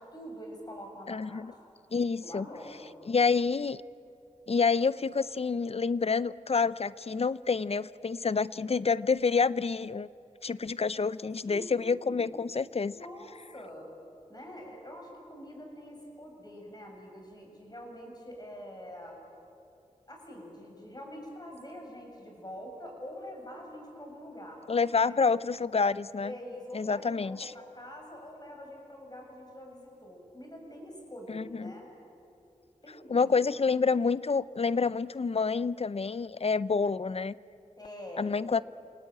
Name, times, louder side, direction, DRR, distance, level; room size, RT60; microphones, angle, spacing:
voice 1, 0.1-1.4 2.2-2.9 11.5-12.3 12.9-13.9 14.3-19.2 20.1-24.6 25.0-25.2 26.2-31.9 32.8-33.3 37.8-38.2, left 1 dB, 30° left, 0 dB, 7.3 m, -45 dB
voice 2, 1.1-1.5 1.9-2.5 3.1-3.8 4.5-10.1 10.4-12.9 24.7-26.3 26.7-27.5 31.3-31.7 33.1-37.3 38.2-38.6, left 5 dB, 50° left, 18 dB, 0.6 m, -28 dB
28.5 x 19.0 x 8.9 m, 2.7 s
cardioid pair, 50°, 13 cm